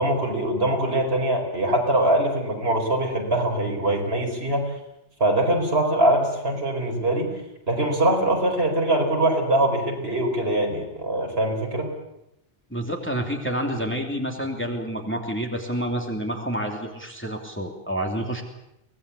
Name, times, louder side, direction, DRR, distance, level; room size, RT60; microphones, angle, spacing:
voice 1, 0.0-4.7 5.2-7.3 7.7-11.9, right 1 dB, 55° right, 2 dB, 4.8 m, -23 dB
voice 2, 12.7-18.4, right 1 dB, 10° left, 1 dB, 2.9 m, -28 dB
24.5 x 19.0 x 8.3 m, 0.84 s
omnidirectional pair, 1.2 m